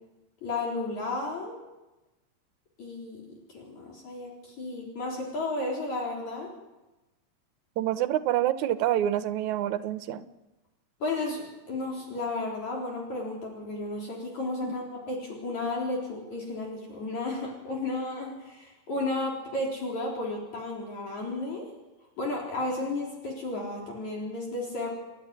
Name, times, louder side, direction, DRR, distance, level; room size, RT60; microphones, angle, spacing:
voice 1, 0.4-1.5 2.8-3.2 3.5-6.5 11.0-21.7 22.2-24.9, left 2 dB, 60° left, -2 dB, 5.1 m, -33 dB
voice 2, 7.8-10.2 14.6-14.7, right 12 dB, 70° right, 11 dB, 2.1 m, -27 dB
30.0 x 11.5 x 9.7 m, 1.0 s
omnidirectional pair, 3.8 m